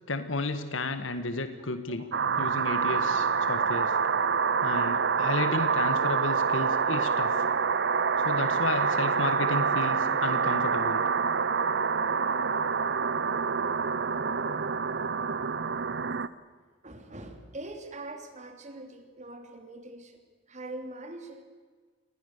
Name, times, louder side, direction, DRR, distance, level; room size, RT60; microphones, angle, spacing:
voice 1, 0.1-2.0 2.4-3.9 4.6-7.4 8.2-11.0, left 3 dB, 80° left, 9 dB, 1.8 m, -32 dB
voice 2, 1.9-2.3 16.8-21.4, right 2 dB, 40° right, 6 dB, 3.1 m, -43 dB
sound 1, 2.1-16.3, right 5 dB, 60° right, 0.9 m, -27 dB
28.0 x 21.0 x 6.9 m, 1.5 s
head